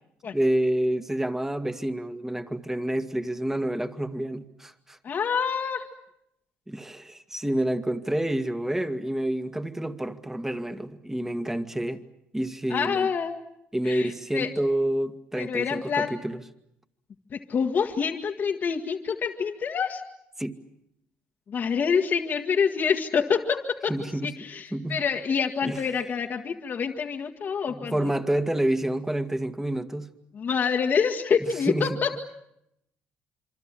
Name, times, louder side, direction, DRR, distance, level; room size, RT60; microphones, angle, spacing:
voice 1, 0.3-5.0 6.7-12.0 12.3-13.1 13.7-16.4 20.4-20.6 23.9-24.3 24.7-25.0 25.6-25.8 27.7-30.1 31.6-32.0, right 1 dB, 10° right, 1.9 m, -28 dB
voice 2, 5.0-5.9 12.7-13.4 13.9-14.5 15.4-16.1 17.3-20.0 21.5-23.9 24.2-28.0 30.3-32.2, left 6 dB, 50° left, 1.8 m, -26 dB
27.0 x 24.5 x 7.5 m
supercardioid pair, 75°, 4 cm